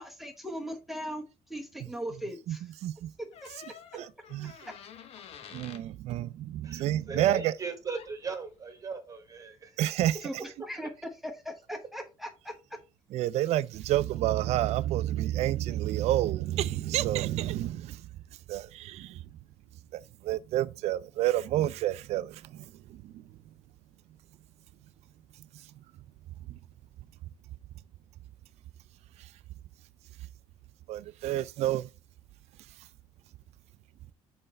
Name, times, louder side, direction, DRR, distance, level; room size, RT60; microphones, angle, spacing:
voice 1, 0.0-2.8 3.4-3.5 10.2-10.9 11.2-12.8, equal, ahead, 1.0 m, -39 dB
sound 1, 3.3-5.9 7.9-8.1, left 8 dB, 55° left, 0.8 m, -48 dB
voice 2, 3.9-4.5 5.5-7.5 9.8-10.4 13.1-18.1 18.5-19.2 19.9-23.2 26.5-26.6 29.2-29.3 30.9-31.9, right 13 dB, 65° right, 0.4 m, -29 dB
voice 3, 6.6-9.8, right 4 dB, 30° right, 1.3 m, -38 dB
5.6 x 4.3 x 4.2 m
cardioid pair, 130°, 12 cm